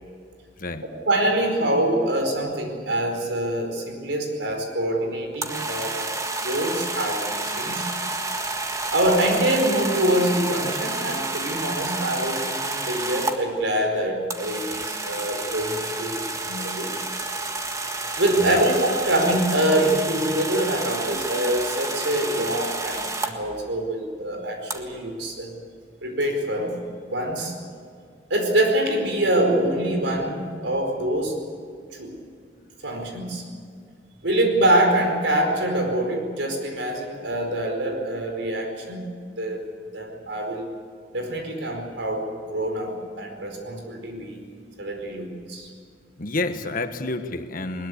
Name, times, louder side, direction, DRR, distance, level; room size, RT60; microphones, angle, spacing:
voice 1, 1.0-6.1 6.4-7.8 8.9-16.9 18.1-25.5 26.0-26.7 27.1-27.5 28.3-31.4 31.9-32.1 32.8-33.4 34.2-39.1 39.4-39.6 39.9-40.7 41.1-44.4 44.8-45.7, right 1 dB, 85° right, 3 dB, 4.8 m, -25 dB
sound 1, 5.3-13.4 14.3-23.3 24.7-24.8, right 2 dB, 20° right, 1.7 m, -30 dB
voice 2, 46.2-47.9, left 2 dB, 50° left, 8 dB, 1.4 m, -29 dB
21.0 x 21.0 x 8.5 m, 2.2 s
head